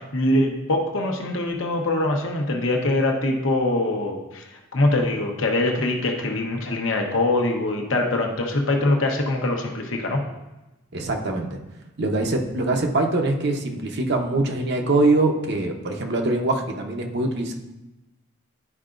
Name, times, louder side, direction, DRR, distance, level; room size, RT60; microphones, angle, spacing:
voice 1, 0.0-10.2, left 2 dB, 65° left, 2 dB, 0.9 m, -23 dB
voice 2, 10.9-11.6 12.0-17.5, right 2 dB, 55° right, 2 dB, 0.8 m, -23 dB
11.0 x 4.8 x 2.5 m, 1.0 s
head